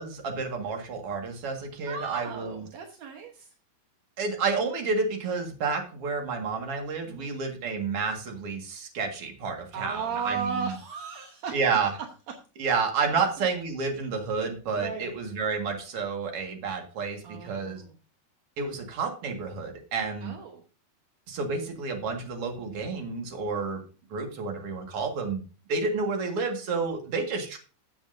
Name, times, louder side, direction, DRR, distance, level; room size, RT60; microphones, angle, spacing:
voice 1, 0.0-2.7 4.2-10.8 11.5-11.9 12.6-17.8 18.6-20.3 21.3-23.8 24.1-25.4 25.7-27.6, right 4 dB, 45° right, 3 dB, 2.1 m, -30 dB
voice 2, 1.9-3.5 7.0-7.3 9.7-11.6 13.1-13.5 14.8-15.2 17.2-18.0 20.2-20.6, right 5 dB, 70° right, 2 dB, 1.6 m, -36 dB
14.5 x 7.4 x 2.6 m, 0.35 s
omnidirectional pair, 4.6 m